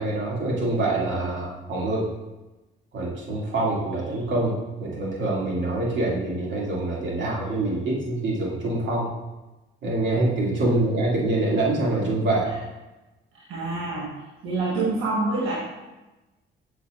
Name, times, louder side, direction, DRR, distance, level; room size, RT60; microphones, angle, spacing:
voice 1, 0.0-2.1 2.9-9.1 9.8-12.5, right 2 dB, 70° right, -4 dB, 2.2 m, -25 dB
voice 2, 13.5-14.1 14.4-15.6, right 3 dB, 90° right, -5 dB, 1.3 m, -26 dB
7.9 x 6.4 x 2.4 m, 1.1 s
cardioid pair, 90°, 20 cm